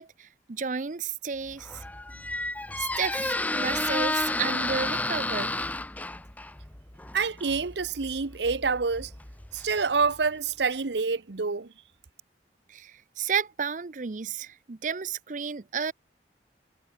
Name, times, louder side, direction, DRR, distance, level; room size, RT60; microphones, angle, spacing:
voice 1, 0.0-1.8 2.8-5.5 12.7-15.9, right 6 dB, 45° right, 0.6 m, -32 dB
Squeak, 1.5-10.2, left 2 dB, 10° left, 0.7 m, -32 dB
voice 2, 7.1-9.1 9.5-11.7, right 4 dB, 80° right, 0.9 m, -27 dB
head